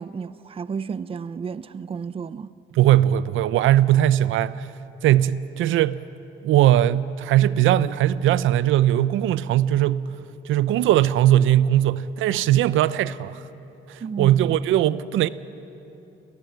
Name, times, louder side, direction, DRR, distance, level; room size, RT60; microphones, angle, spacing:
voice 1, 0.0-2.5 14.0-14.4, right 6 dB, 30° right, 0.5 m, -32 dB
voice 2, 2.7-4.7 5.0-6.0 6.4-10.1 10.4-13.4 13.9-15.3, right 12 dB, 80° right, 0.5 m, -19 dB
17.0 x 16.0 x 9.3 m
cardioid pair, 90°, 20 cm